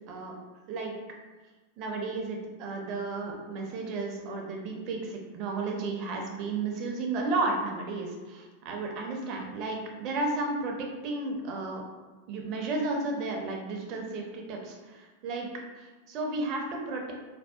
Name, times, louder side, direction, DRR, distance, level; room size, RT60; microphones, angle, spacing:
voice 1, 1.8-11.8 12.3-15.5 15.8-17.1, right 3 dB, 40° right, 1 dB, 0.4 m, -33 dB
2.6 x 2.1 x 2.3 m, 1.2 s
figure-of-eight pair, 90°, 0 cm